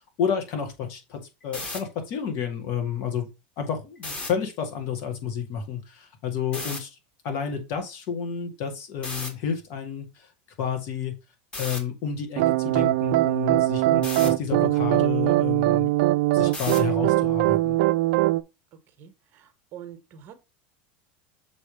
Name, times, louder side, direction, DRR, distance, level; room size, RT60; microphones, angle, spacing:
voice 1, 0.2-3.3 3.6-7.0 7.2-10.3 10.6-11.1 11.6-15.9 16.3-17.8, left 7 dB, 55° left, 2.1 m, -30 dB
sound 1, 1.4-1.8 4.0-4.3 6.5-6.8 9.0-9.3 11.5-11.8 14.0-14.3 16.5-16.9, left 2 dB, 20° left, 2.1 m, -34 dB
sound 2, 12.4-18.4, right 17 dB, 70° right, 0.4 m, -21 dB
voice 2, 19.0-20.3, right 10 dB, 45° right, 1.2 m, -45 dB
6.8 x 3.5 x 5.2 m
supercardioid pair, 135°, 5 cm